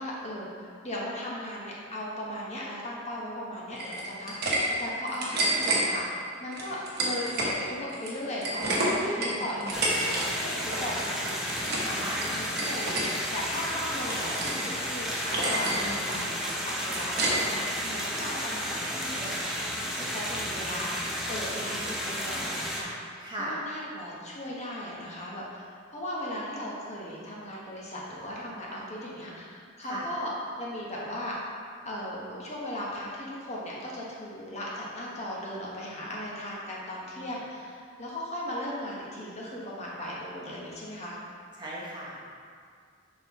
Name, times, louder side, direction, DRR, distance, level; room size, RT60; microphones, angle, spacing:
voice 1, 0.0-10.0 10.4-11.4 11.8-12.0 12.3-13.0 13.3-23.0 23.4-30.3 30.6-31.4 31.8-41.2, left 1 dB, 35° left, -5 dB, 1.0 m, -37 dB
sound 1, 3.8-4.6 4.9-5.8 6.5-7.5 7.9-10.3 10.5-10.8 11.2-11.9 12.2-13.1 13.5-14.6 14.9-15.0 15.3-15.8 16.1-17.6, right 1 dB, 50° right, 1.1 m, -29 dB
voice 2, 9.2-9.7 11.9-12.3 15.8-16.3 23.2-23.6 29.8-30.1 41.6-42.3, right 1 dB, 20° right, -6 dB, 1.0 m, -38 dB
sound 2, 9.7-22.8, equal, ahead, 0.7 m, -32 dB
6.9 x 5.4 x 3.0 m, 2.1 s
head